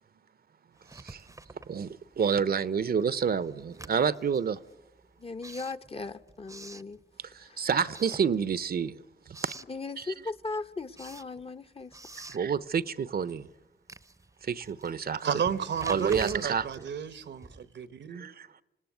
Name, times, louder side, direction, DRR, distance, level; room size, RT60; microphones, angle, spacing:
Writing, 0.8-2.4 2.7-7.5 7.8-8.8 9.1-9.8 10.2-17.9, right 2 dB, 15° right, 0.7 m, -48 dB
voice 1, 0.9-1.2 1.7-4.6 7.2-9.5 10.0-10.1 12.3-13.5 14.4-15.3 15.9-16.9 18.1-18.6, right 6 dB, 55° right, 0.8 m, -29 dB
voice 2, 5.2-7.0 7.5-7.7 9.7-11.9, left 3 dB, 30° left, 0.9 m, -38 dB
voice 3, 15.2-18.3, right 7 dB, 75° right, 1.0 m, -32 dB
26.0 x 18.0 x 9.3 m
cardioid pair, 70°, 19 cm